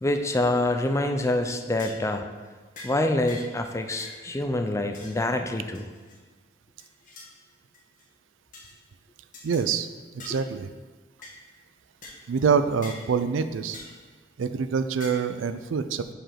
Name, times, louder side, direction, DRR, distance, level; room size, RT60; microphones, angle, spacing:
voice 1, 0.0-2.2 2.8-5.9, left 1 dB, 15° left, 6 dB, 0.4 m, -26 dB
sound 1, 1.2-1.4 1.8-2.1 2.8-3.0 3.3-3.6 4.0-4.2 4.9-5.2 5.7-6.2 6.8-7.3 7.7-8.1 8.5-8.7 9.3-9.7 10.2-10.4 11.2-11.4 12.0-12.2 12.8-13.0 13.7-14.0 15.0-15.3, left 3 dB, 45° left, 1.3 m, -44 dB
voice 2, 9.4-10.7 12.3-13.8 14.4-16.1, right 6 dB, 90° right, 11 dB, 0.4 m, -26 dB
5.1 x 5.0 x 5.7 m, 1.4 s
head